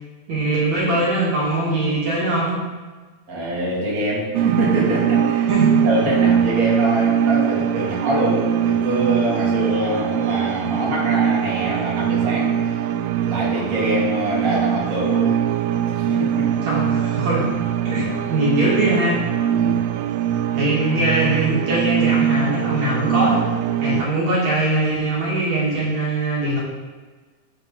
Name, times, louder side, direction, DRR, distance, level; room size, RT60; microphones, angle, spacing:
voice 1, 0.3-2.6 5.5-5.8 16.6-17.5 17.8-19.2 20.5-23.5 23.8-26.6, right 1 dB, 50° right, -6 dB, 2.7 m, -21 dB
voice 2, 3.3-5.5 5.8-12.8 13.2-15.4 15.9-16.6 17.9-18.0 19.5-19.8 23.8-24.0, right 1 dB, 30° right, -6 dB, 1.6 m, -24 dB
sound 1, 4.3-24.0, right 9 dB, 85° right, 2.2 m, -21 dB
13.5 x 5.4 x 4.0 m, 1.4 s
omnidirectional pair, 4.9 m